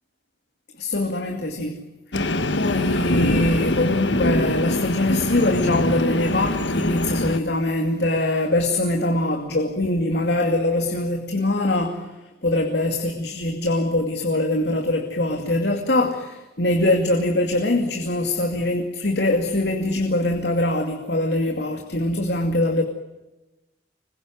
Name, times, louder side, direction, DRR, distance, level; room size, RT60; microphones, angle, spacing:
voice 1, 0.8-1.8 2.6-12.1 12.4-22.8, left 1 dB, 70° left, 3 dB, 2.5 m, -23 dB
Train, 2.1-7.4, left 1 dB, 85° left, 1.5 m, -23 dB
26.5 x 22.0 x 9.3 m, 1.1 s
head